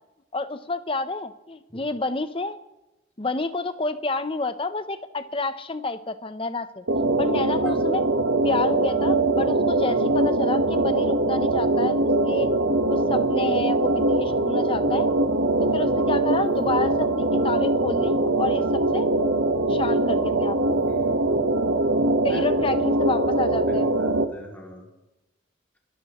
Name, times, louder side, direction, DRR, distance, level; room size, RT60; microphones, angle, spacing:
voice 1, 0.3-2.6 3.2-6.8 7.2-8.0 8.4-12.5 12.9-15.1 15.6-19.1 19.7-20.8 22.2-23.9, left 3 dB, 30° left, 11 dB, 0.8 m, -29 dB
sound 1, 6.9-24.3, right 2 dB, 85° right, 1.2 m, -22 dB
voice 2, 20.8-21.4 22.3-22.5 23.7-24.9, left 1 dB, 10° left, -1 dB, 2.9 m, -41 dB
29.5 x 13.0 x 3.1 m, 1.0 s
head